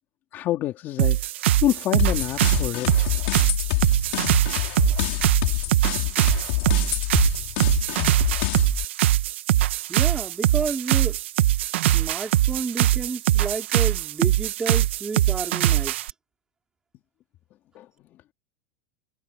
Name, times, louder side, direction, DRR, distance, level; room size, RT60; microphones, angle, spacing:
voice 1, 0.3-1.2 1.6-3.2 17.7-17.9, left 13 dB, 35° left, 3.2 m, -27 dB
sound 1, 1.0-16.1, right 14 dB, 80° right, 1.0 m, -22 dB
sound 2, 2.0-8.8, left 22 dB, 65° left, 2.5 m, -27 dB
voice 2, 9.9-11.2 11.9-15.9, right 4 dB, 10° right, 2.6 m, -31 dB
supercardioid pair, 160°, 6 cm